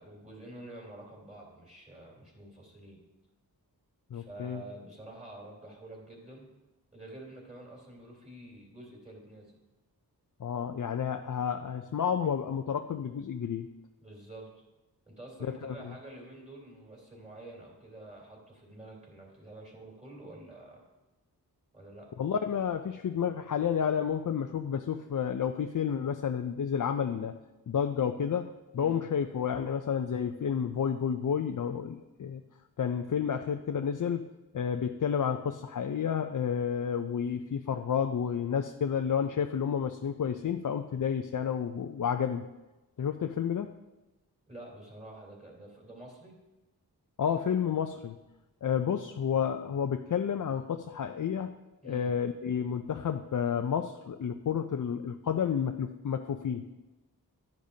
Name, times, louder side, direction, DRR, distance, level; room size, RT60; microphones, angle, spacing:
voice 1, 0.0-3.0 4.1-6.5 6.9-9.5 14.0-14.6 15.1-20.9 21.7-22.1 28.8-29.0 44.5-46.4 51.8-52.1, right 1 dB, 15° right, -2 dB, 3.3 m, -48 dB
voice 2, 4.1-4.6 10.4-13.7 15.6-15.7 22.2-27.3 27.7-32.4 32.8-42.5 43.0-43.7 47.2-48.2 48.6-51.5 51.8-56.7, left 7 dB, 55° left, 7 dB, 0.5 m, -30 dB
12.0 x 10.0 x 2.8 m, 1.1 s
wide cardioid pair, 85°, 39 cm